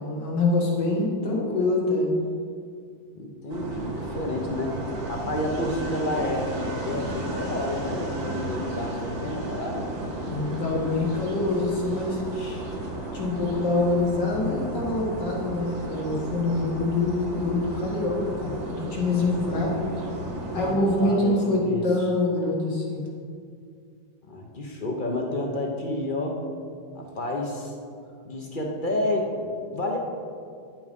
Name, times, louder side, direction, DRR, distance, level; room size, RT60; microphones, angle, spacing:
voice 1, 0.0-2.1 10.3-12.7 13.1-19.8 20.5-23.0, left 2 dB, 65° left, -3 dB, 2.4 m, -25 dB
voice 2, 3.1-4.8 5.1-9.9 20.5-21.8 24.3-26.4 26.9-27.7 28.2-30.0, left 1 dB, 35° left, 0 dB, 0.9 m, -30 dB
sound 1, 3.5-20.7, right 1 dB, 75° right, 2.4 m, -33 dB
10.5 x 6.0 x 5.3 m, 2.3 s
omnidirectional pair, 2.1 m